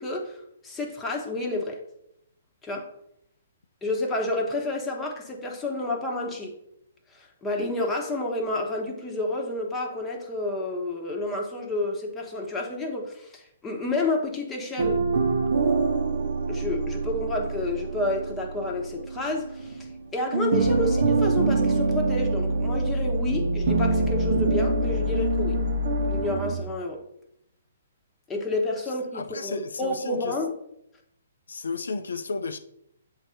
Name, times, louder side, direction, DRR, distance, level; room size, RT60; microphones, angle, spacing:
voice 1, 0.0-1.8 2.6-2.9 3.8-6.5 7.1-15.0 16.5-19.9 20.1-25.6 26.1-27.0 28.3-30.5, left 2 dB, 10° left, 1.1 m, -30 dB
sound 1, 14.8-20.0 20.3-26.6, right 3 dB, 60° right, 1.0 m, -25 dB
voice 2, 29.1-30.4 31.5-32.6, left 4 dB, 80° left, 0.4 m, -33 dB
7.5 x 2.7 x 4.9 m
hypercardioid pair, 140°, 0 cm